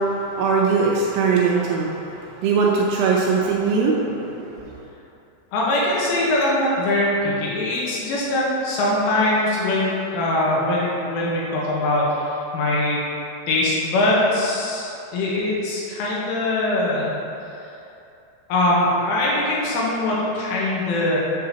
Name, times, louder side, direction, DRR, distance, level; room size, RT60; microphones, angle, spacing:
voice 1, 0.0-4.8, right 4 dB, 80° right, -3 dB, 2.8 m, -21 dB
voice 2, 5.5-13.0 13.5-17.2 18.5-21.2, left 1 dB, 80° left, -5 dB, 3.5 m, -22 dB
8.6 x 6.6 x 2.9 m, 2.7 s
omnidirectional pair, 5.9 m